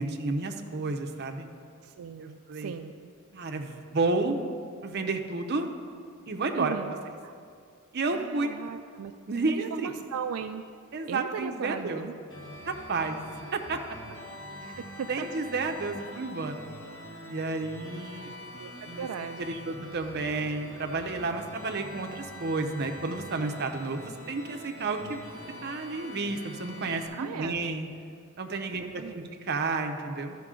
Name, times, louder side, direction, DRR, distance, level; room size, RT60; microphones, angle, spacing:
voice 1, 0.0-1.5 2.2-2.7 3.3-4.4 4.8-5.7 6.3-7.0 7.9-8.5 9.3-9.9 10.9-12.0 12.7-13.2 13.5-13.8 15.1-16.7 17.3-18.3 18.9-19.1 19.4-27.9 28.4-30.4, right 3 dB, 50° right, 5 dB, 0.7 m, -31 dB
voice 2, 1.8-2.9 6.5-6.9 7.2-7.3 8.1-9.1 9.5-10.6 11.1-12.1 14.6-15.3 18.6-19.6 27.1-27.6 28.7-29.3, right 7 dB, 80° right, 7 dB, 0.3 m, -37 dB
sound 1, 12.3-27.1, left 1 dB, 75° left, 2.0 m, -44 dB
12.5 x 5.8 x 3.7 m, 2.3 s
head